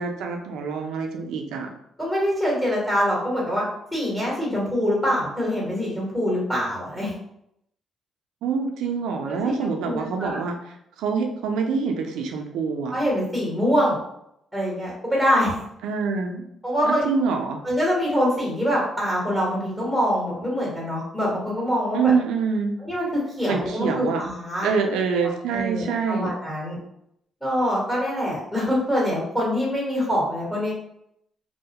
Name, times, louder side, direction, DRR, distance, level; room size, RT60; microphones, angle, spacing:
voice 1, 0.0-1.7 8.4-12.9 15.8-16.4 16.8-17.6 21.9-22.8 23.5-24.2 24.6-26.3, right 5 dB, 85° right, 3 dB, 0.4 m, -25 dB
voice 2, 2.0-3.6 3.9-7.1 9.2-9.5 9.8-10.4 12.9-14.0 14.5-15.6 16.6-17.1 17.6-22.1 22.8-23.1 23.4-24.7 25.2-26.8 27.4-30.8, equal, 10° left, -6 dB, 1.1 m, -24 dB
2.2 x 2.1 x 2.8 m, 0.76 s
cardioid pair, 90°, 0 cm